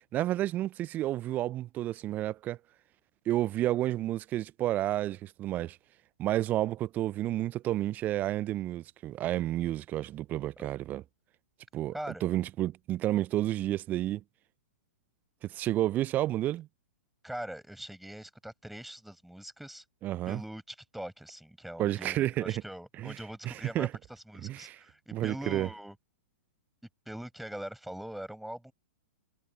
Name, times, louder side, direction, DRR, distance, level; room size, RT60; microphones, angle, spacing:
voice 1, 0.1-2.6 3.3-5.8 6.2-11.0 11.7-11.9 12.2-14.2 15.5-16.7 20.0-20.4 21.8-22.6 23.0-23.2 23.4-23.9 24.4-24.8 25.1-25.7, right 14 dB, 25° right, 0.4 m, -30 dB
voice 2, 11.9-12.2 17.2-19.8 20.3-26.0 27.1-28.7, right 1 dB, ahead, 7.4 m, -42 dB
figure-of-eight pair, 110°, 7 cm